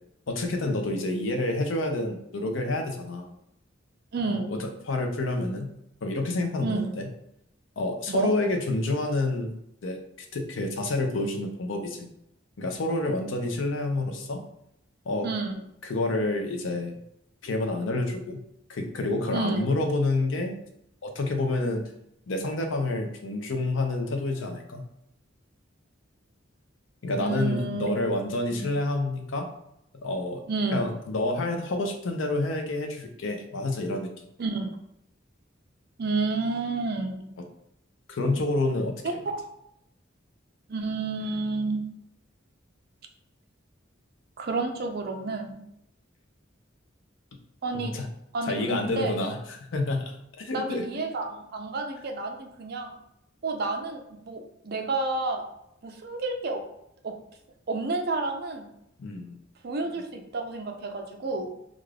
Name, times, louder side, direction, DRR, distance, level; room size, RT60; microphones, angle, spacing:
voice 1, 0.3-3.3 4.3-5.7 6.0-7.1 7.8-9.5 9.8-12.1 12.6-14.4 15.1-15.3 15.8-16.9 17.4-18.4 18.7-20.6 21.0-21.8 22.3-24.8 27.0-29.5 30.0-30.4 30.7-34.1 38.1-39.0 47.7-48.1 48.4-51.0 59.0-59.3, left 2 dB, 75° left, 4 dB, 0.5 m, -28 dB
voice 2, 4.1-4.5 6.6-7.0 8.1-8.3 15.2-15.6 19.3-19.6 27.2-27.9 28.5-28.6 30.5-30.8 34.4-34.7 36.0-37.3 39.3-39.4 40.7-41.8 44.4-45.6 47.6-48.0 48.3-49.2 50.5-52.9 53.4-55.4 55.8-56.6 57.0-57.1 57.7-58.7 59.6-61.5, right 3 dB, 55° right, 3 dB, 0.4 m, -30 dB
2.4 x 2.4 x 3.2 m, 0.77 s
head